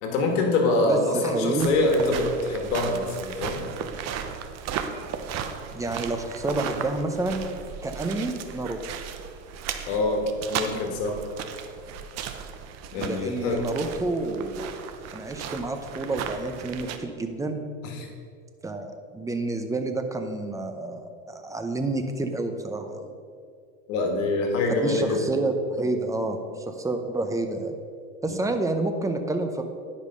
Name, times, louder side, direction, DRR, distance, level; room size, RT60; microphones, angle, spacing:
voice 1, 0.0-3.7 9.9-11.2 12.9-13.7 17.8-18.1 23.9-25.2 28.3-28.4, left 2 dB, 65° left, 2 dB, 1.9 m, -25 dB
voice 2, 0.8-1.7 5.7-7.5 7.8-8.8 12.9-14.7 15.1-17.6 18.6-23.1 24.8-27.7 28.2-29.6, right 2 dB, 10° right, 6 dB, 0.6 m, -29 dB
sound 1, 1.6-17.0, right 7 dB, 40° right, 0.8 m, -36 dB
10.5 x 5.3 x 5.4 m, 2.3 s
supercardioid pair, 115°, 41 cm